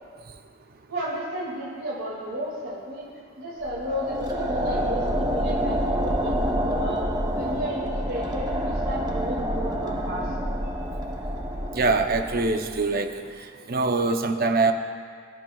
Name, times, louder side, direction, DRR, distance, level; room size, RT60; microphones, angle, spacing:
voice 1, 0.9-3.0 3.4-7.0 7.3-10.5, equal, 75° right, -6 dB, 2.4 m, -33 dB
sound 1, 3.6-13.0, equal, 20° right, 0.9 m, -28 dB
voice 2, 11.7-13.1 13.7-14.7, right 3 dB, 50° right, 6 dB, 0.7 m, -23 dB
22.0 x 10.5 x 2.3 m, 2.1 s
head